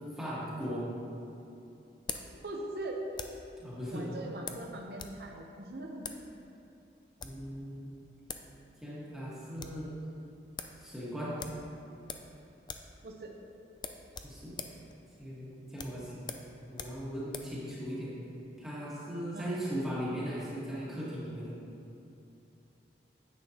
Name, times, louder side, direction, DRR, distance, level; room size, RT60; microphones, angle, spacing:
voice 1, 0.2-0.9 3.6-4.1 7.2-7.9 8.8-9.9 10.8-11.4 14.2-14.8 15.2-16.3 16.7-18.1 18.6-21.5, equal, 5° right, -9 dB, 1.6 m, -38 dB
sound 1, 0.6-3.5 4.5-5.2 5.5-5.6 6.0-6.3 7.0-7.5 8.0-8.1 8.3-8.5 8.8-8.9 9.2-9.8 10.2-10.3 10.6-10.8 11.4-12.4 12.6-13.0 13.2-13.4 13.8-17.6, left 6 dB, 25° left, 0.4 m, -44 dB
voice 2, 2.1-3.0 3.9-6.1 13.0-13.3 19.3-19.6, right 2 dB, 60° right, 1 dB, 0.8 m, -41 dB
9.9 x 8.4 x 2.9 m, 2.7 s
head